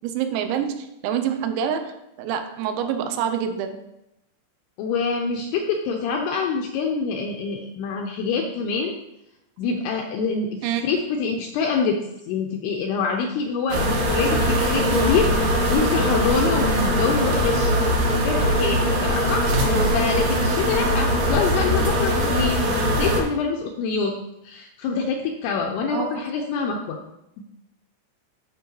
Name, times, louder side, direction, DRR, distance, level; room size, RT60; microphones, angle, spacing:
voice 1, 0.0-3.8 10.6-10.8 25.9-26.2, right 8 dB, 80° right, 7 dB, 2.7 m, -26 dB
voice 2, 4.8-9.0 9.6-12.0 12.3-19.4 19.9-24.1 24.4-27.0, left 5 dB, 90° left, 2 dB, 2.4 m, -26 dB
sound 1, 13.7-23.2, equal, 65° right, 2.1 m, -21 dB
12.0 x 5.4 x 3.1 m, 0.87 s
omnidirectional pair, 5.4 m